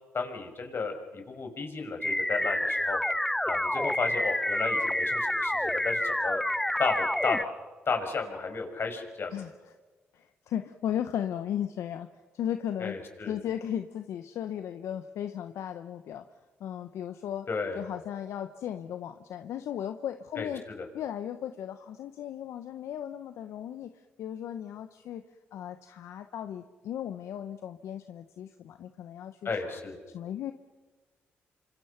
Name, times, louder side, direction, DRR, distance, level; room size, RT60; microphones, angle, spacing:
voice 1, 0.1-3.0 3.5-6.4 6.8-7.4 7.9-9.3 12.8-13.4 17.5-17.8 20.4-20.5 20.8-20.9 29.4-30.0, left 4 dB, 55° left, 4 dB, 6.0 m, -33 dB
sound 1, 2.0-7.4, left 1 dB, 5° left, 0.7 m, -28 dB
voice 2, 10.1-12.1 12.3-13.0 13.3-16.2 16.6-17.5 17.7-20.6 20.9-25.2 25.5-29.8 30.1-30.5, left 10 dB, 80° left, 9 dB, 1.0 m, -36 dB
28.5 x 25.5 x 5.9 m, 1.3 s
supercardioid pair, 55°, 5 cm